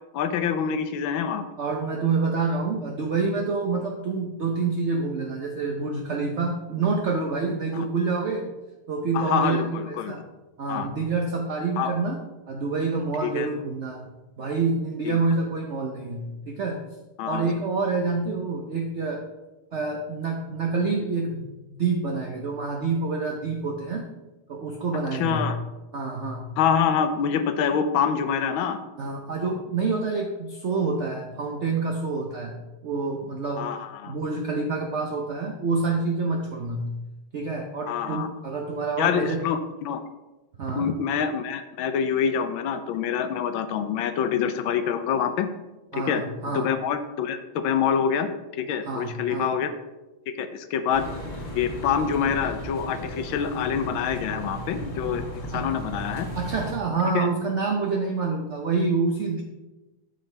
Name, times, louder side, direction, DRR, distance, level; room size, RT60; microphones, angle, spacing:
voice 1, 0.1-1.4 7.7-7.9 9.1-10.1 10.7-10.9 11.8-11.9 13.2-13.5 15.0-15.2 17.2-17.5 25.1-25.6 26.6-28.8 33.6-34.2 37.9-38.3 39.0-40.0 40.8-45.5 45.9-46.2 46.5-48.3 48.5-49.7 50.4-51.1 51.5-55.2 55.5-56.3 57.1-57.3, left 7 dB, 80° left, 9 dB, 1.4 m, -26 dB
voice 2, 1.6-8.4 8.9-10.2 10.6-12.2 12.5-14.0 14.4-16.8 17.3-19.2 19.7-24.1 24.5-25.4 25.9-26.5 29.0-32.6 32.8-33.7 34.1-36.9 37.3-39.4 40.6-40.9 45.9-46.7 48.9-49.5 55.5-55.6 56.4-59.4, right 4 dB, 70° right, 1 dB, 0.6 m, -27 dB
sound 1, 50.9-56.7, equal, 25° left, 1.3 m, -36 dB
8.8 x 6.4 x 3.3 m, 1.1 s
omnidirectional pair, 2.2 m